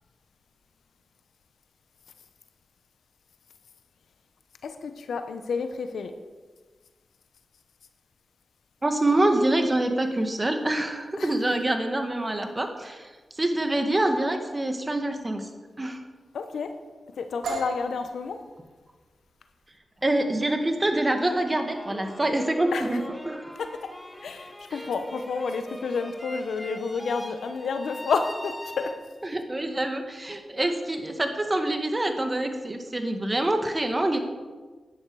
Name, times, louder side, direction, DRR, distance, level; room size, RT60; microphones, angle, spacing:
voice 1, 4.6-6.1 11.2-11.4 16.3-16.8 17.1-18.4 22.7-23.0 23.6-29.0, left 5 dB, 80° left, 8 dB, 0.9 m, -30 dB
voice 2, 8.8-15.5 15.8-16.0 20.0-23.0 23.3-23.5 29.3-34.2, right 1 dB, 30° right, 5 dB, 1.9 m, -26 dB
sound 1, 17.4-25.1, right 3 dB, 90° right, 2.0 m, -41 dB
sound 2, 21.2-29.4, left 1 dB, 10° left, 1.8 m, -41 dB
12.0 x 9.6 x 4.8 m, 1.3 s
supercardioid pair, 40°, 0 cm